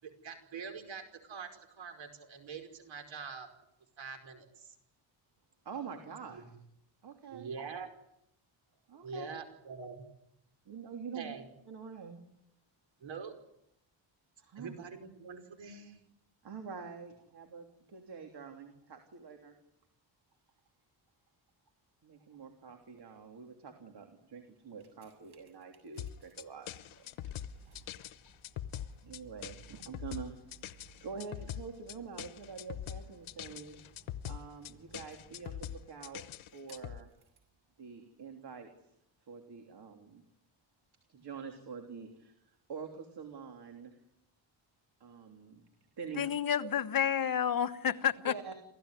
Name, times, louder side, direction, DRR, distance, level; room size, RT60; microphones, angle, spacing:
voice 1, 0.0-3.5 4.0-4.7 6.3-6.4 7.3-7.9 9.0-10.0 11.1-11.5 13.0-13.3 14.6-16.1, right 5 dB, 70° right, 5.3 m, -44 dB
voice 2, 5.6-6.6 7.0-7.5 8.9-9.4 10.6-11.3 11.7-12.2 14.4-14.7 16.4-19.5 22.0-27.3 28.8-30.3 31.0-33.8 34.2-37.1 37.8-38.7 39.2-40.2 41.1-43.9 45.0-45.6 46.0-46.2 48.2-48.5, right 6 dB, 55° right, 3.4 m, -46 dB
sound 1, 24.6-37.6 38.3-38.4, right 5 dB, 85° right, 7.2 m, -61 dB
sound 2, 26.0-37.0, left 11 dB, 85° left, 1.1 m, -43 dB
voice 3, 46.1-48.5, left 8 dB, 45° left, 1.3 m, -30 dB
28.5 x 16.5 x 9.9 m
wide cardioid pair, 165°, 47 cm